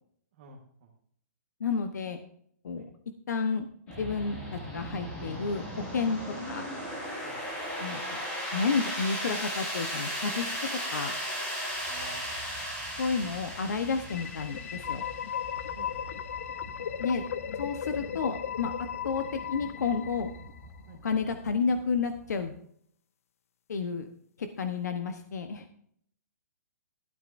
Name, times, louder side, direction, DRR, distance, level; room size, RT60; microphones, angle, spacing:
voice 1, 0.3-0.9 2.8-2.9 7.2-7.4 11.9-12.4 15.8-15.9 20.9-21.0, right 4 dB, 30° right, -1 dB, 1.4 m, -50 dB
voice 2, 1.6-2.2 2.6-2.9 3.3-3.7 4.0-6.2 6.5-6.6 7.8-8.2 8.5-10.5 10.9-11.1 13.0-15.0 17.0-17.2 17.6-20.3 21.0-22.5 23.7-24.1 24.4-25.7, left 5 dB, 75° left, 8 dB, 1.1 m, -31 dB
sound 1, 3.9-22.5, equal, 10° left, 2.3 m, -38 dB
sound 2, 14.0-20.8, left 8 dB, 55° left, 0.5 m, -36 dB
13.0 x 12.0 x 2.6 m, 0.66 s
hypercardioid pair, 175°, 9 cm